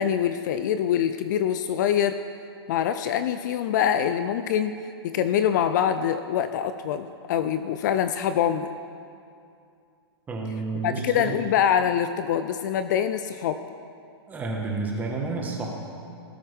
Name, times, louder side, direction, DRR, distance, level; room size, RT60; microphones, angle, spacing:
voice 1, 0.0-2.2 2.7-4.7 5.0-8.7 10.8-13.6, left 9 dB, 45° left, 10 dB, 0.5 m, -24 dB
voice 2, 10.3-11.3 14.3-15.7, right 3 dB, 10° right, -1 dB, 1.5 m, -30 dB
18.0 x 8.3 x 3.6 m, 2.4 s
hypercardioid pair, 150°, 14 cm